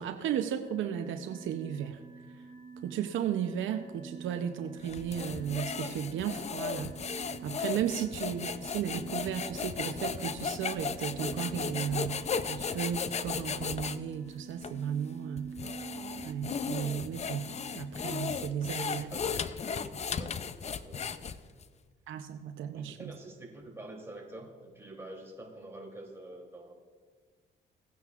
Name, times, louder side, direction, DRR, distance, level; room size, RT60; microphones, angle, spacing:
voice 1, 0.0-2.0 2.8-6.9 7.4-12.2 12.5-15.5 16.2-19.1 22.1-23.1, right 9 dB, 80° right, 7 dB, 0.6 m, -34 dB
sound 1, 0.6-18.5, right 4 dB, 30° right, 1.1 m, -48 dB
sound 2, 4.8-14.0 14.6-14.7 15.4-21.6, left 6 dB, 35° left, 0.5 m, -36 dB
voice 2, 18.9-21.6 22.7-26.7, right 1 dB, 15° right, -1 dB, 2.9 m, -47 dB
18.0 x 9.3 x 2.4 m, 1.5 s
cardioid pair, 90°, 20 cm